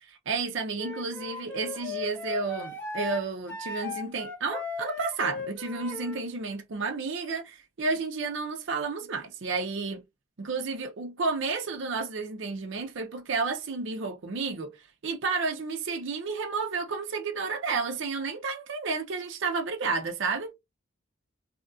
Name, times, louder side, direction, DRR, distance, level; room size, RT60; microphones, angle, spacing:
voice 1, 0.1-10.0 10.4-14.7 15.0-20.5, right 4 dB, 60° right, 0.5 m, -31 dB
Wind instrument woodwind instrument, 0.8-6.2, left 3 dB, 10° left, 0.7 m, -37 dB
2.8 x 2.3 x 2.5 m
head